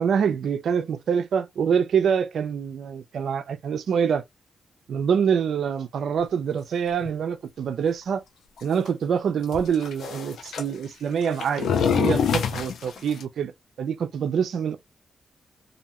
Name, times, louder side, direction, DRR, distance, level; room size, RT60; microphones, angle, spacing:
voice 1, 0.0-4.2 4.9-8.2 8.6-13.5 13.8-14.8, right 7 dB, 80° right, 0.4 m, -25 dB
sound 1, 7.0-7.2 8.6-8.7 8.9-9.0 9.5-10.6 11.2-13.2, left 7 dB, 85° left, 0.4 m, -25 dB
2.6 x 2.1 x 2.8 m
cardioid pair, 70°, 0 cm